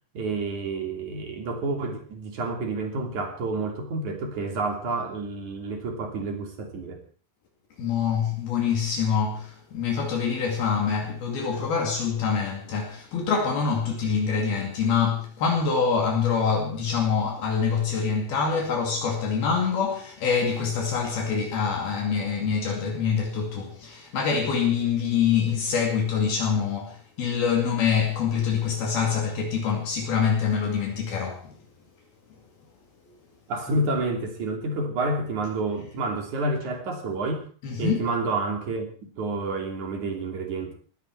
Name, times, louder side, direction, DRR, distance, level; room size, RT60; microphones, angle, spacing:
voice 1, 0.1-7.0 33.5-37.5 37.8-40.7, right 2 dB, 45° right, 4.0 m, -29 dB
voice 2, 7.8-31.6 37.6-38.1, left 6 dB, 65° left, 4.2 m, -25 dB
19.5 x 15.5 x 4.6 m
omnidirectional pair, 4.9 m